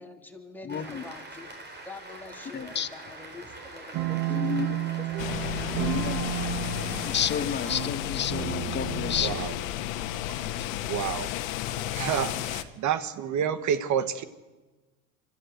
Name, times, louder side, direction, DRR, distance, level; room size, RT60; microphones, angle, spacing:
voice 1, 0.0-4.6 5.0-6.1, left 3 dB, 5° left, 1 dB, 3.2 m, -47 dB
voice 2, 0.6-1.0 2.5-2.9 4.3-4.7 5.8-6.2 7.1-9.4 10.6-10.7, left 7 dB, 25° left, 11 dB, 1.2 m, -30 dB
Cheering / Applause, 0.7-7.8, right 2 dB, 25° right, 4.1 m, -43 dB
sound 1, 3.9-9.9, right 13 dB, 65° right, 1.2 m, -32 dB
sound 2, 5.2-12.6, left 13 dB, 80° left, 1.3 m, -32 dB
voice 3, 9.2-9.5 10.2-14.2, right 8 dB, 45° right, 13 dB, 1.5 m, -30 dB
25.0 x 14.0 x 8.0 m, 1.2 s
supercardioid pair, 105°, 40 cm